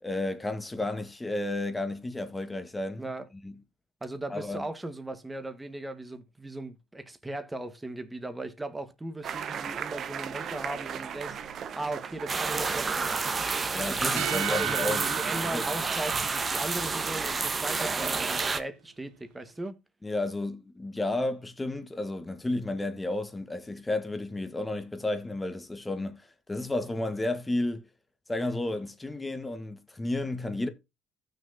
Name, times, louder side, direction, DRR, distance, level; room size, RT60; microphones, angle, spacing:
voice 1, 0.0-3.1 3.4-3.5 4.3-4.6 13.7-15.0 15.4-15.6 20.0-27.8 28.3-30.7, left 2 dB, 15° left, 1.4 m, -32 dB
voice 2, 3.0-3.3 4.0-11.4 11.7-13.4 13.9-19.8, right 2 dB, 10° right, 1.5 m, -37 dB
sound 1, 9.2-18.5, right 7 dB, 55° right, 1.0 m, -40 dB
sound 2, 12.3-18.6, right 4 dB, 30° right, 1.2 m, -29 dB
sound 3, 14.2-16.8, right 19 dB, 85° right, 0.5 m, -36 dB
15.0 x 6.5 x 2.8 m
supercardioid pair, 85°, 0 cm